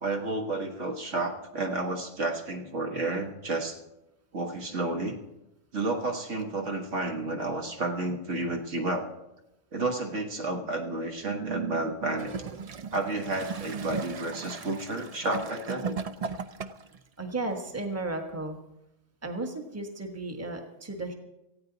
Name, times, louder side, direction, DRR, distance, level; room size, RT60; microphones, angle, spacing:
voice 1, 0.0-3.8 4.3-5.2 5.7-9.1 9.7-12.3 12.9-15.9, right 2 dB, 65° right, 3 dB, 1.7 m, -31 dB
Gurgling / Toilet flush, 12.1-17.0 17.8-17.9, right 5 dB, 50° right, 0.4 m, -37 dB
voice 2, 17.2-18.6 19.2-21.1, right 2 dB, 10° right, 4 dB, 1.3 m, -34 dB
18.5 x 14.5 x 4.0 m, 0.93 s
omnidirectional pair, 1.4 m